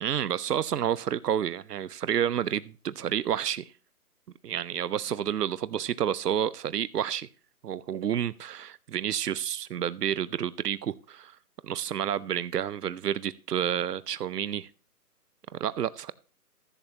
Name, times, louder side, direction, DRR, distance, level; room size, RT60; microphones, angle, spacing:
voice 1, 0.0-3.7 4.4-7.3 7.6-11.3 11.6-14.7 15.5-16.1, right 9 dB, 85° right, 0.6 m, -30 dB
14.5 x 8.1 x 2.8 m
hypercardioid pair, 155°, 46 cm